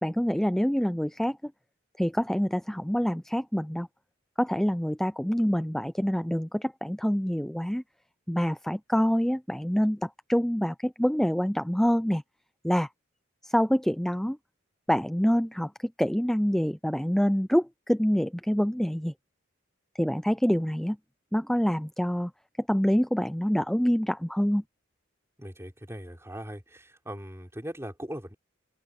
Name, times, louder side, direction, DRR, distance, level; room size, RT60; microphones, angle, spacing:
voice 1, 0.0-1.5 2.0-3.9 4.4-7.8 8.3-12.2 12.6-12.9 13.4-14.4 14.9-15.7 16.0-19.1 20.0-21.0 21.3-22.3 22.7-24.6, equal, ahead, 0.4 m, -26 dB
voice 2, 25.4-28.3, equal, 15° right, 5.6 m, -40 dB
open air
head